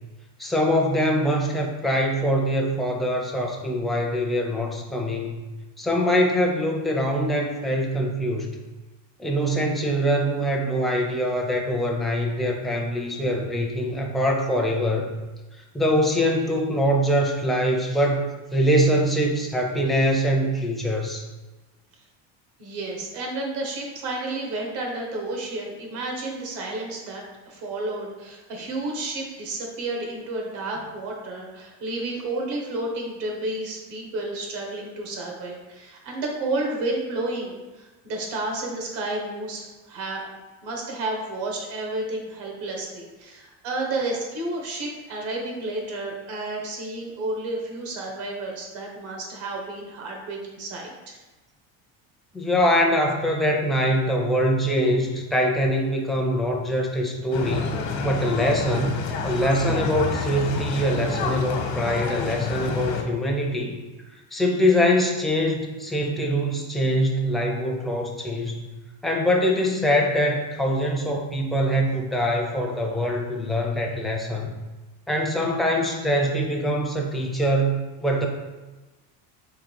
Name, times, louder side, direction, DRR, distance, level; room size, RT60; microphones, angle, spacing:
voice 1, 0.4-5.4 5.8-8.6 9.2-15.1 15.7-21.2 52.3-57.7 58.0-63.8 64.3-68.7 69.0-74.5 75.1-78.3, equal, ahead, 0 dB, 0.4 m, -23 dB
voice 2, 22.6-51.2, right 2 dB, 75° right, 0 dB, 1.4 m, -31 dB
sound 1, 57.3-63.0, left 5 dB, 75° left, 0.9 m, -28 dB
3.9 x 3.0 x 4.5 m, 1.2 s
cardioid pair, 125°, 44 cm